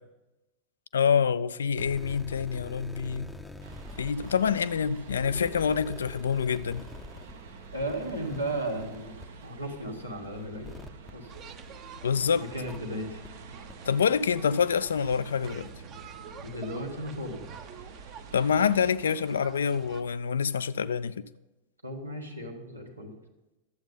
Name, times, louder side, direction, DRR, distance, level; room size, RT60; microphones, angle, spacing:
voice 1, 0.9-3.3 4.0-6.9 12.0-12.5 13.9-15.7 18.3-21.2, left 6 dB, 65° left, 0.4 m, -26 dB
sound 1, 1.7-12.1 12.6-12.8 13.2-13.3 13.7-13.8, left 2 dB, 5° left, 0.6 m, -46 dB
sound 2, 3.6-18.9, right 4 dB, 65° right, 0.9 m, -48 dB
voice 2, 7.7-10.8 11.1-11.3 12.4-13.2 16.4-17.4 21.8-23.1, right 1 dB, 85° right, 1.5 m, -35 dB
sound 3, 11.3-20.0, right 7 dB, 35° right, 0.8 m, -48 dB
12.0 x 8.1 x 5.3 m
figure-of-eight pair, 90°, 0 cm